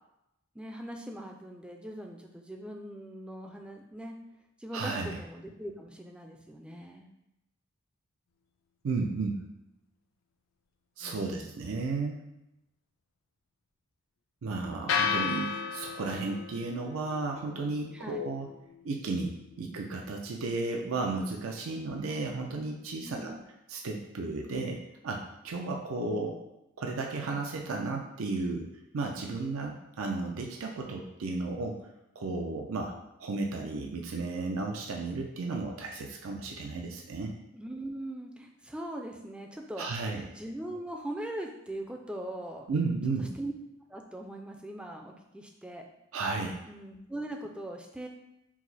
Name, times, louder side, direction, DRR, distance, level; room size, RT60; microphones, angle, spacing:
voice 1, 0.5-4.2 4.6-7.1 11.0-11.5 17.9-18.2 23.0-23.4 37.5-42.7 43.3-43.5 43.9-45.9 46.7-48.1, right 1 dB, 5° right, 2 dB, 0.3 m, -41 dB
voice 2, 4.7-5.1 8.8-9.4 11.0-12.2 14.4-18.5 18.8-23.4 23.7-26.4 26.8-28.7 28.9-31.8 32.2-32.9 33.2-37.3 39.8-40.3 42.7-43.3 46.1-46.6, right 3 dB, 85° right, 1 dB, 0.5 m, -33 dB
sound 1, 14.9-23.0, left 6 dB, 70° left, 0.4 m, -37 dB
4.8 x 2.0 x 4.0 m, 0.88 s
head